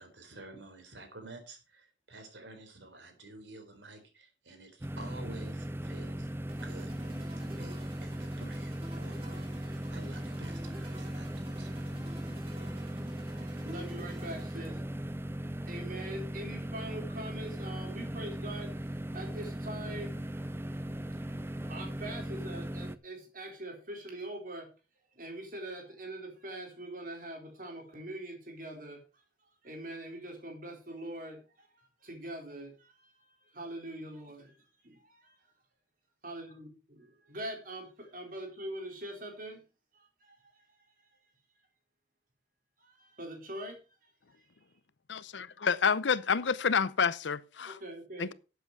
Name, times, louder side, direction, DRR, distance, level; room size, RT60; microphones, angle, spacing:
voice 1, 0.0-6.3 6.6-12.0, right 2 dB, 80° right, 4.0 m, -50 dB
sound 1, 4.8-23.0, right 1 dB, 15° right, 0.5 m, -38 dB
sound 2, 6.5-14.8, equal, 30° right, 2.8 m, -50 dB
voice 2, 13.0-14.8 15.7-18.7 19.1-20.5 21.1-24.7 25.2-29.0 29.6-34.5 34.8-35.4 36.2-39.6 39.9-40.8 42.8-44.1 44.4-44.5 47.7-48.3, right 1 dB, 50° right, 4.0 m, -43 dB
voice 3, 45.1-47.8 48.2-48.3, left 6 dB, 80° left, 0.7 m, -29 dB
12.5 x 8.0 x 4.7 m
head